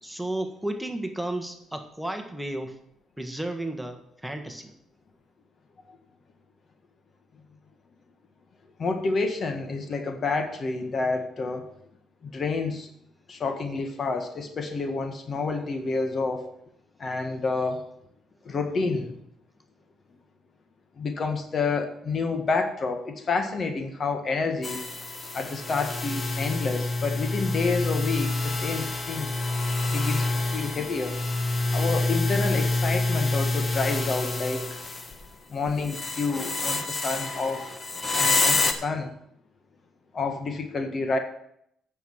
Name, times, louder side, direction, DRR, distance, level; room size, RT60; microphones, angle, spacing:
voice 1, 0.0-2.8 3.2-4.7 18.4-18.5, right 1 dB, 5° right, 5 dB, 1.5 m, -33 dB
voice 2, 8.8-11.7 12.2-12.9 13.3-16.6 17.0-17.9 18.4-19.2 21.0-24.9 25.3-29.3 29.9-31.2 31.7-34.8 35.5-37.6 38.2-39.1 40.1-41.2, left 4 dB, 45° left, 6 dB, 1.6 m, -29 dB
sound 1, 24.6-35.3 35.7-38.7, left 2 dB, 30° left, 1.3 m, -27 dB
9.3 x 6.4 x 7.3 m, 0.72 s
supercardioid pair, 70°, 0 cm